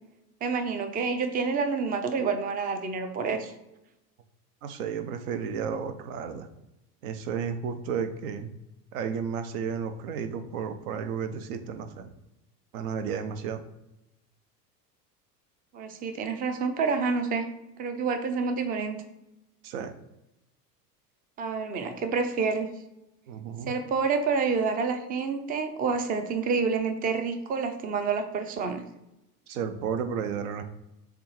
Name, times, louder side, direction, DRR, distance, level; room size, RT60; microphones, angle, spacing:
voice 1, 0.4-3.5 15.7-17.5 17.8-19.0 21.4-22.7 23.7-28.8, right 5 dB, 20° right, 8 dB, 0.4 m, -28 dB
voice 2, 4.6-6.5 7.0-8.5 8.9-12.1 12.7-13.6 19.6-19.9 23.3-23.7 29.5-30.6, right 7 dB, 60° right, 8 dB, 0.7 m, -32 dB
6.8 x 2.5 x 3.1 m, 0.91 s
figure-of-eight pair, 75°, 49 cm